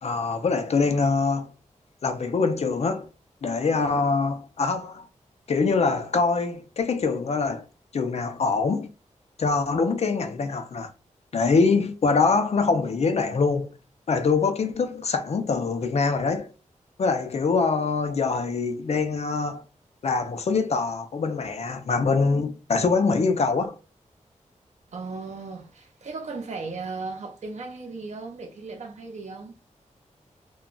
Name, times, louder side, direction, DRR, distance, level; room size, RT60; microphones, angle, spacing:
voice 1, 0.0-1.5 2.0-3.1 3.4-5.0 5.5-7.6 7.9-8.9 9.4-10.9 11.3-13.7 14.1-16.5 17.0-19.6 20.0-23.7, left 4 dB, 55° left, 0.5 m, -24 dB
voice 2, 24.9-29.5, right 3 dB, 60° right, 0.7 m, -36 dB
2.2 x 2.2 x 3.8 m
wide cardioid pair, 140°, 13 cm